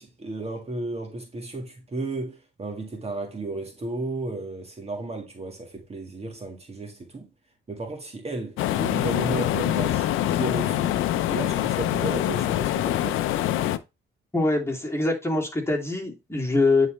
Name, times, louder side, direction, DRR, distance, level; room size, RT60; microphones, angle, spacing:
voice 1, 0.0-7.3 7.7-11.0 11.3-13.3, right 2 dB, 30° right, 1.8 m, -33 dB
sound 1, 8.6-13.8, left 13 dB, 90° left, 0.6 m, -25 dB
voice 2, 14.3-16.9, left 2 dB, 10° left, 2.8 m, -23 dB
9.2 x 4.1 x 3.3 m
cardioid pair, 90°, 20 cm